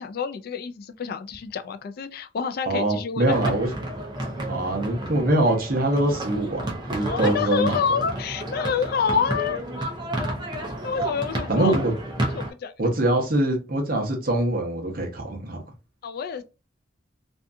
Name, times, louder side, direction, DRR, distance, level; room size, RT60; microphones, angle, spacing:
voice 1, 0.0-3.6 7.0-9.6 10.8-11.8 12.3-12.9 16.0-16.4, left 6 dB, 55° left, 0.3 m, -28 dB
voice 2, 2.7-3.9 4.4-8.0 11.5-11.9 12.8-15.6, right 1 dB, 50° right, 0.8 m, -24 dB
sound 1, 3.2-12.5, right 1 dB, 25° right, 0.6 m, -31 dB
2.6 x 2.3 x 2.5 m
head